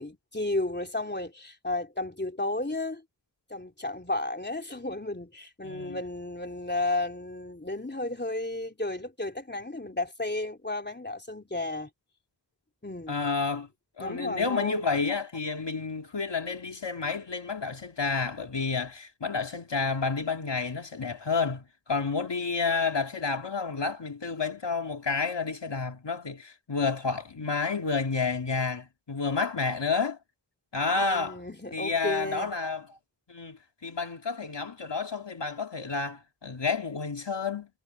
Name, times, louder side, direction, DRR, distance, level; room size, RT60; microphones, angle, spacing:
voice 1, 0.0-3.0 3.5-11.9 12.8-13.3 14.0-14.9 31.0-32.5, left 2 dB, 25° left, 3.4 m, -33 dB
voice 2, 5.6-6.0 13.1-13.7 14.0-30.2 30.7-31.4 31.7-32.8 33.3-37.7, left 4 dB, 70° left, 2.1 m, -30 dB
wide cardioid pair, 45°, 44 cm